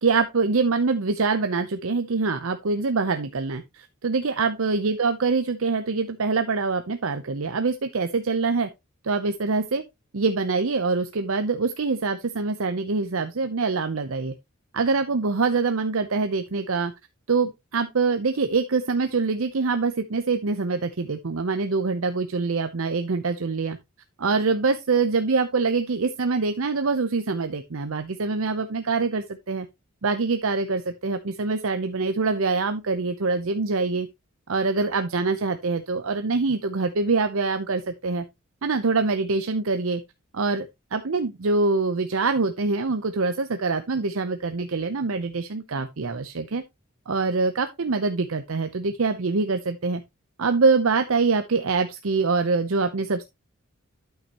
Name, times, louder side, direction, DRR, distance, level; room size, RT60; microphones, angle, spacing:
voice 1, 0.0-8.7 9.0-9.8 10.1-14.3 14.7-16.9 17.3-23.8 24.2-29.7 30.0-34.1 34.5-38.2 38.6-40.0 40.3-40.7 40.9-46.6 47.1-50.0 50.4-53.2, right 4 dB, 70° right, 0.7 m, -24 dB
12.0 x 5.6 x 2.9 m
head